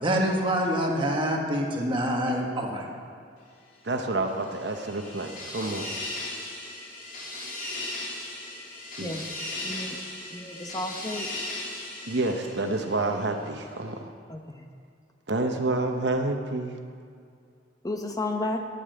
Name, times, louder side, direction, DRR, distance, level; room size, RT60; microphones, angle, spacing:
voice 1, 0.0-2.8, equal, 30° right, 1.6 m, -26 dB
voice 2, 3.8-5.9 9.0-9.1 12.1-14.1 15.3-16.8, right 2 dB, 70° right, 0.9 m, -28 dB
sound 1, 4.1-13.2, left 2 dB, 50° left, 3.3 m, -37 dB
voice 3, 9.6-10.0 10.3-11.3 14.3-14.4 17.8-18.6, left 2 dB, 20° left, 0.9 m, -32 dB
9.6 x 8.6 x 8.9 m
head